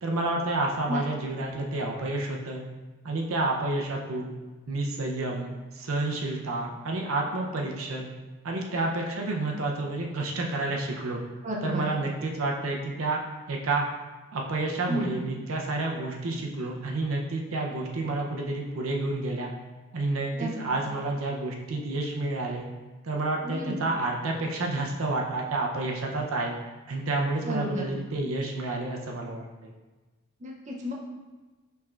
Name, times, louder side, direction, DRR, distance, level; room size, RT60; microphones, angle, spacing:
voice 1, 0.0-2.6 3.0-4.3 4.7-8.1 8.4-11.2 11.6-13.2 13.5-13.8 14.3-19.5 19.9-22.7 23.0-26.5 26.9-29.7, right 2 dB, 85° right, 0 dB, 0.6 m, -29 dB
voice 2, 11.4-11.9 14.9-15.1 20.3-20.5 23.4-23.8 27.4-27.9 30.4-30.9, equal, 35° right, -2 dB, 0.6 m, -32 dB
5.5 x 3.4 x 2.4 m, 1.2 s
head